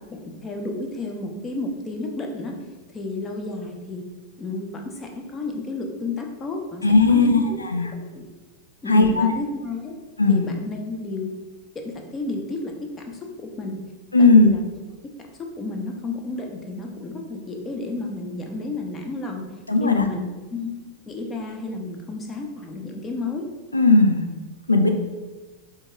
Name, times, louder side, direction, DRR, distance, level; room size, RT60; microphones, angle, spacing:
voice 1, 0.1-2.5 2.9-4.0 4.4-7.6 7.9-8.3 8.8-10.0 10.3-11.3 11.7-13.9 14.2-14.6 15.4-19.5 19.8-20.8 21.1-23.5, left 3 dB, 20° left, 2 dB, 0.5 m, -31 dB
voice 2, 6.8-7.9 8.9-9.3 10.2-10.5 14.1-14.5 19.7-20.0 23.7-24.2 24.7-24.9, left 3 dB, 80° left, 5 dB, 0.3 m, -16 dB
4.3 x 2.3 x 3.0 m, 1.3 s
figure-of-eight pair, 90°, 0 cm